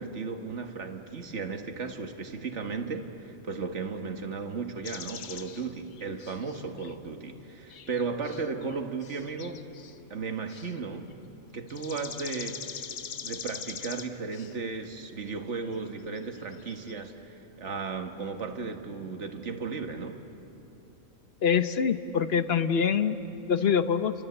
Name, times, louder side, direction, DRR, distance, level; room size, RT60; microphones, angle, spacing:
voice 1, 0.0-9.6 10.1-11.1 11.5-12.7 13.2-20.2, right 4 dB, 60° right, 5 dB, 1.8 m, -35 dB
sound 1, 4.8-6.9 7.7-10.0 10.5-10.8 11.1-11.2 11.7-14.6 15.3-15.4 15.6-15.8 16.2-16.9, left 8 dB, 70° left, 1.2 m, -42 dB
voice 2, 21.4-23.2 23.5-24.1, left 7 dB, 50° left, 11 dB, 1.0 m, -24 dB
30.0 x 24.5 x 8.1 m, 2.9 s
omnidirectional pair, 1.4 m